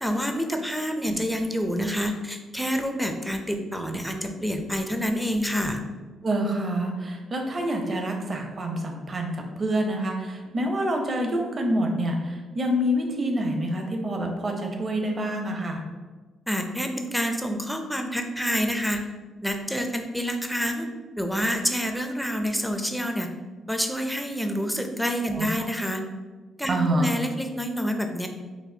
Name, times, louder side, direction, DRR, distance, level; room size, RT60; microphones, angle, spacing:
voice 1, 0.0-5.8 16.5-19.1 19.4-20.9 21.2-23.3 23.7-26.0 26.6-28.3, equal, ahead, 4 dB, 0.4 m, -27 dB
voice 2, 6.2-15.8 25.3-25.7 26.7-27.1, equal, 40° right, 3 dB, 0.6 m, -27 dB
4.1 x 2.5 x 2.6 m, 1.3 s
cardioid pair, 90°, 0 cm